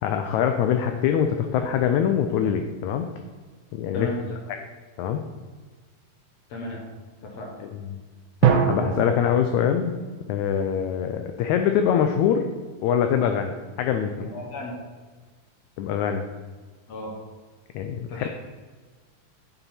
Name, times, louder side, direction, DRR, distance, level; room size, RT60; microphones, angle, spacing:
voice 1, 0.0-3.1 3.7-4.1 4.5-4.6 5.0-5.2 7.6-8.0 8.4-9.9 10.3-12.5 12.8-14.3 15.8-16.2 17.7-18.3, left 8 dB, 90° left, 6 dB, 1.6 m, -24 dB
voice 2, 6.5-6.8 7.2-7.5 14.2-14.8 16.9-17.1 18.1-18.3, left 1 dB, 60° left, -1 dB, 2.0 m, -34 dB
sound 1, 8.4-11.2, right 7 dB, 85° right, 2.5 m, -25 dB
9.2 x 7.0 x 4.3 m, 1.4 s
omnidirectional pair, 4.0 m